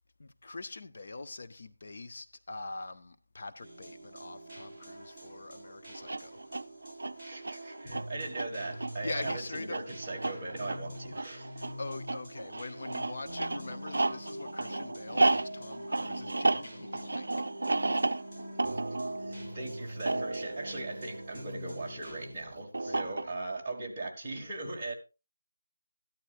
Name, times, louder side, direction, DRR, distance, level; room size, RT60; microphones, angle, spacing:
voice 1, 0.2-6.6 6.9-7.0 9.0-9.8 11.8-17.3 17.8-18.2 22.9-23.3, left 3 dB, 35° left, 0.6 m, -43 dB
sound 1, 3.6-22.3, equal, 10° left, 5.0 m, -45 dB
sound 2, 5.9-21.7 22.7-23.6, right 2 dB, 60° right, 0.5 m, -33 dB
voice 2, 7.2-11.7 18.7-18.8 19.2-24.9, right 2 dB, 10° right, 1.6 m, -39 dB
13.0 x 12.0 x 2.5 m
figure-of-eight pair, 180°, 0 cm